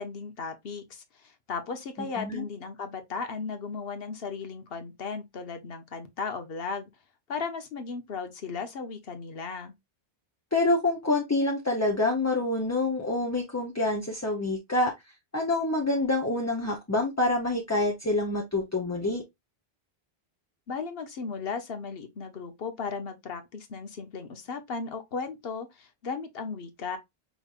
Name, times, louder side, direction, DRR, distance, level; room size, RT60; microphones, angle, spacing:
voice 1, 0.0-6.9 7.3-9.7 20.7-27.0, left 5 dB, 70° left, 1.1 m, -36 dB
voice 2, 10.5-14.9 15.3-19.2, left 2 dB, 20° left, 0.6 m, -27 dB
5.0 x 3.1 x 2.4 m
omnidirectional pair, 1.0 m